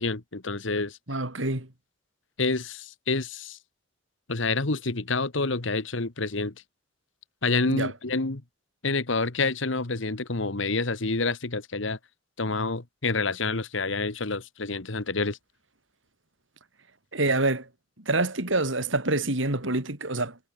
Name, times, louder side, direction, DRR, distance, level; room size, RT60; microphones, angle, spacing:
voice 1, 0.0-1.0 2.4-3.6 4.3-6.5 7.4-8.4 8.8-12.0 12.4-15.4, left 3 dB, 70° left, 1.6 m, -28 dB
voice 2, 1.1-1.7 7.7-7.9 17.1-17.7 18.0-20.4, right 2 dB, 70° right, 4.0 m, -26 dB
head